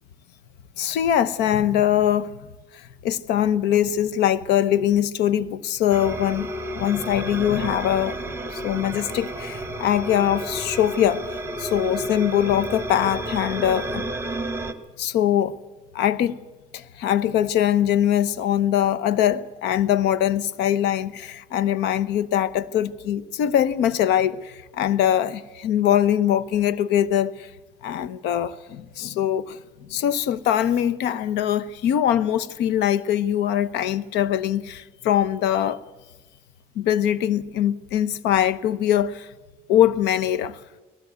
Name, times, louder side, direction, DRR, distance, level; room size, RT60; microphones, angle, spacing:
voice 1, 0.8-2.3 2.7-8.2 8.5-11.3 11.6-14.1 15.0-15.6 15.9-16.4 16.7-27.5 27.8-35.8 36.7-39.3 39.7-40.6, left 10 dB, 85° left, 0.9 m, -22 dB
sound 1, 5.9-14.7, right 1 dB, 15° right, 1.5 m, -31 dB
18.5 x 15.5 x 9.4 m
cardioid pair, 110°, 17 cm